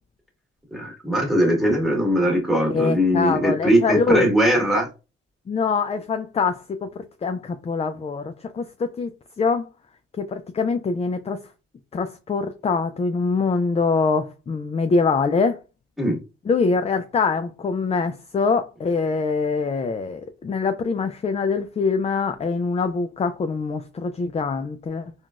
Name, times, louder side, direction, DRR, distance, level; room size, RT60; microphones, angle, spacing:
voice 1, 0.7-4.9 16.0-16.2, equal, ahead, 1.6 m, -20 dB
voice 2, 2.7-4.3 5.5-6.9 7.2-9.1 9.4-9.7 10.2-11.4 11.9-15.6 16.5-25.1, left 4 dB, 20° left, 0.4 m, -24 dB
3.7 x 2.3 x 2.4 m
supercardioid pair, 60°, 29 cm